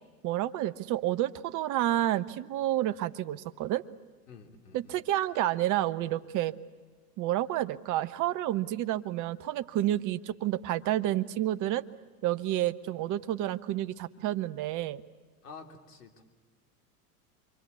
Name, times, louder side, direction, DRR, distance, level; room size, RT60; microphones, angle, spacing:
voice 1, 0.2-3.8 4.7-6.5 7.2-11.8 12.2-15.0, right 13 dB, 40° right, 13 dB, 1.0 m, -30 dB
voice 2, 4.3-5.0 15.4-16.2, left 5 dB, 80° left, 4 dB, 3.1 m, -49 dB
27.0 x 23.5 x 8.3 m, 1.4 s
hypercardioid pair, 90°, 46 cm